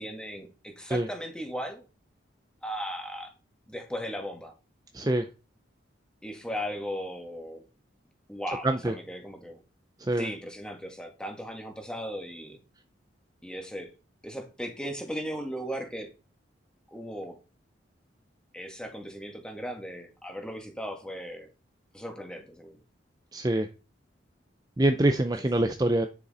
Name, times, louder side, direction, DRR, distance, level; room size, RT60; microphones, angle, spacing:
voice 1, 0.0-1.8 2.6-3.3 3.7-4.5 6.2-7.6 8.3-9.6 10.1-12.6 13.4-13.9 14.2-16.1 16.9-17.4 18.5-21.5 21.9-22.8 25.3-25.7, equal, 5° left, 4 dB, 1.8 m, -37 dB
voice 2, 4.9-5.2 8.6-8.9 10.1-10.3 23.3-23.7 24.8-26.1, right 1 dB, 20° right, 7 dB, 0.5 m, -24 dB
10.0 x 6.8 x 4.2 m, 0.32 s
head